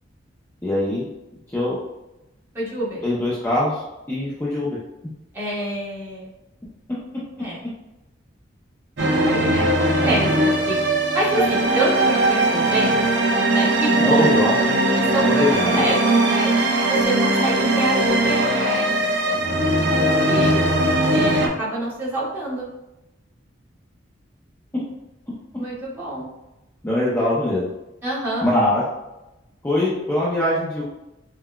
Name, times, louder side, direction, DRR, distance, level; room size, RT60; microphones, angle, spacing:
voice 1, 0.6-1.1 1.5-1.8 3.0-4.8 11.3-11.4 13.9-14.7 15.2-15.9 26.8-27.7 28.4-28.8 29.6-30.8, left 1 dB, 10° left, -8 dB, 0.5 m, -22 dB
voice 2, 2.5-3.0 5.3-6.3 7.4-7.6 9.0-10.8 11.1-13.1 13.5-14.3 14.9-18.9 19.3-20.5 21.1-22.7 25.6-26.3 28.0-28.4, right 1 dB, 10° right, -8 dB, 1.2 m, -26 dB
sound 1, 9.0-21.5, right 1 dB, 65° right, 0.6 m, -20 dB
5.6 x 2.2 x 2.2 m, 0.96 s
head